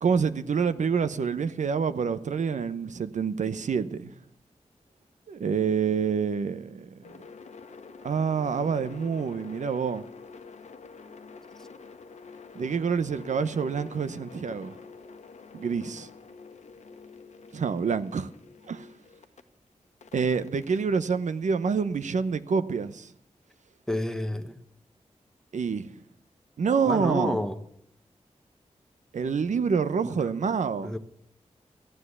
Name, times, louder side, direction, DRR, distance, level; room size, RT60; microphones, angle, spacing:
voice 1, 0.0-4.2 5.3-6.9 8.0-10.0 12.6-14.7 15.5-16.1 17.5-18.3 18.7-18.9 20.1-23.1 25.5-25.9 26.6-27.4 29.1-30.9, right 6 dB, 85° right, 0.8 m, -27 dB
sound 1, 7.0-19.4 20.0-22.1, left 4 dB, 70° left, 1.1 m, -48 dB
voice 2, 23.9-24.5 26.9-27.6 30.0-30.2 30.8-31.0, left 1 dB, 5° left, 1.0 m, -29 dB
14.5 x 10.0 x 8.2 m
wide cardioid pair, 130°, 12 cm